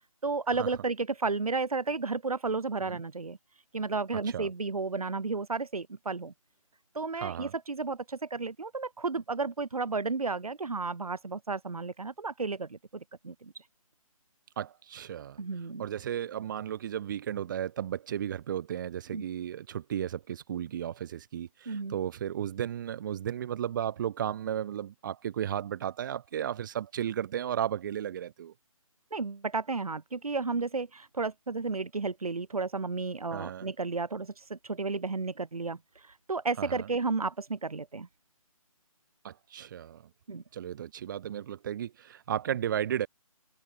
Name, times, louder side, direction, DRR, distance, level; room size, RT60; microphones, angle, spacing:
voice 1, 0.2-3.4 3.7-6.3 6.9-13.6 15.4-15.9 19.1-19.2 21.7-22.0 29.1-38.1 40.3-40.4, right 4 dB, 90° right, 1.7 m, -33 dB
voice 2, 7.2-7.5 14.6-15.4 15.8-28.5 33.3-33.7 36.6-36.9 39.2-40.0 40.5-43.1, right 10 dB, 35° right, 2.9 m, -34 dB
hypercardioid pair, 160°, 18 cm